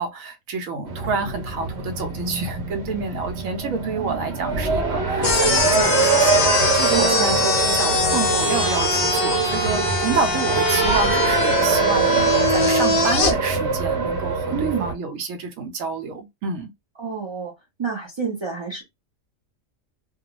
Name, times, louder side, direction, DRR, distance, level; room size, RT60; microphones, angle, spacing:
voice 1, 0.0-16.7, right 4 dB, 80° right, 1.1 m, -28 dB
Race car auto racing, 0.9-14.9, right 4 dB, 60° right, 1.0 m, -23 dB
sound 1, 5.2-13.3, left 4 dB, 60° left, 0.3 m, -22 dB
voice 2, 6.9-7.4 14.5-15.0 17.0-17.5 17.8-18.8, right 5 dB, 40° right, 0.4 m, -28 dB
2.3 x 2.3 x 2.8 m
omnidirectional pair, 1.3 m